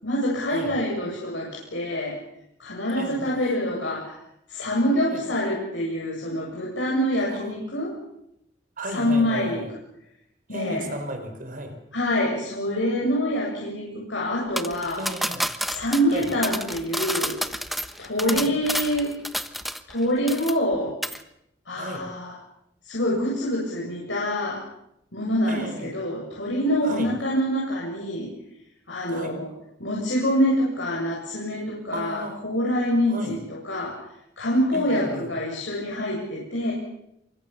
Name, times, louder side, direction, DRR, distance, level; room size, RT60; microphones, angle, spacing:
voice 1, 0.0-2.2 2.6-4.2 4.5-7.9 8.9-9.6 10.5-10.9 11.9-15.0 15.7-17.3 18.0-19.1 19.9-21.0 21.7-22.3 22.8-24.6 25.1-28.3 28.9-29.5 29.8-34.0 34.4-36.7, equal, 85° left, -3 dB, 7.7 m, -25 dB
voice 2, 2.9-3.2 5.1-5.2 7.2-7.5 8.8-9.7 10.5-11.7 15.0-15.5 16.1-16.3 18.2-18.5 21.8-22.0 25.5-25.9 26.8-27.1 29.1-29.3 31.9-32.4 33.1-33.4 34.7-35.3, right 1 dB, 50° right, 6 dB, 5.0 m, -34 dB
sound 1, 14.6-20.0 20.3-20.7 21.0-21.2, equal, ahead, 1.2 m, -30 dB
28.0 x 24.5 x 7.2 m, 0.80 s
head